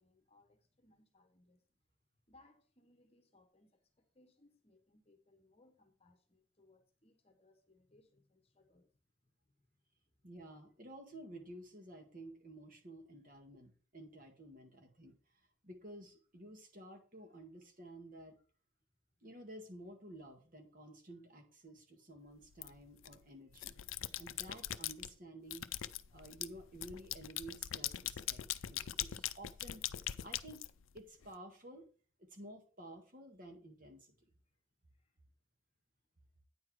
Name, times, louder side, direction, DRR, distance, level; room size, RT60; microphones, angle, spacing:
voice 1, 0.0-1.6 2.3-9.7 10.1-10.3 34.2-34.5 34.9-35.2, left 2 dB, 30° left, 1.1 m, -69 dB
voice 2, 10.2-15.1 15.6-18.4 19.2-25.7 26.1-29.8 30.2-30.6 30.9-31.9 32.3-34.3, right 1 dB, 45° right, 1.8 m, -53 dB
sound 1, 22.6-23.1 23.5-25.1 25.5-31.3, left 12 dB, 85° left, 0.5 m, -41 dB
9.3 x 4.8 x 5.9 m
head